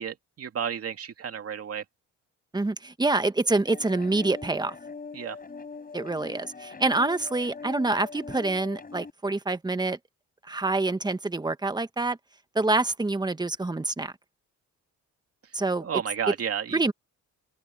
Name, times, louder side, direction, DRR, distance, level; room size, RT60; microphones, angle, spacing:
voice 1, 0.0-1.8 5.1-5.4 15.8-16.8, right 8 dB, 50° right, 2.5 m, -32 dB
voice 2, 2.5-4.7 5.9-10.0 10.5-12.2 12.5-14.1 15.5-15.9 16.7-16.9, right 2 dB, 15° right, 1.4 m, -26 dB
sound 1, 3.7-9.1, left 4 dB, 30° left, 5.0 m, -42 dB
open air
cardioid pair, 90°, 30 cm